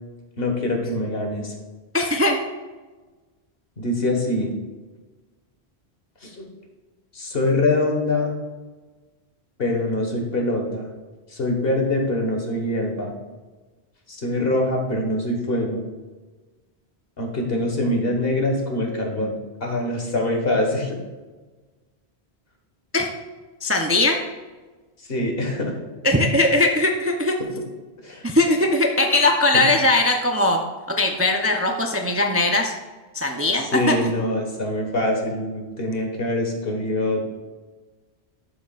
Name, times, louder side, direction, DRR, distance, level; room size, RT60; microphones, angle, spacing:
voice 1, 0.4-1.5 3.8-4.5 6.2-6.5 7.1-8.4 9.6-10.9 11.3-13.1 14.1-15.8 17.2-19.3 19.6-21.0 25.0-25.7 28.0-28.2 29.5-29.6 33.5-37.2, left 1 dB, 65° left, 2 dB, 1.6 m, -24 dB
voice 2, 1.9-2.4 22.9-23.1 23.6-24.2 26.0-27.4 28.2-30.6 30.9-32.7 33.1-34.0, left 2 dB, 20° right, 3 dB, 0.5 m, -20 dB
11.5 x 7.0 x 2.4 m, 1.3 s
omnidirectional pair, 1.1 m